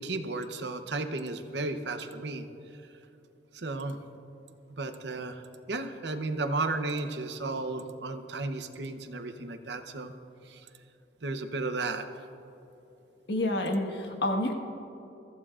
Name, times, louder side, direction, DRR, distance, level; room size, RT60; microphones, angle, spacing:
voice 1, 0.0-2.5 3.5-4.0 4.7-5.4 5.7-10.1 10.5-10.6 11.2-12.0, right 3 dB, 60° right, 8 dB, 0.8 m, -34 dB
voice 2, 13.3-14.5, left 1 dB, 60° left, 2 dB, 1.5 m, -28 dB
23.0 x 14.5 x 2.5 m, 2.9 s
head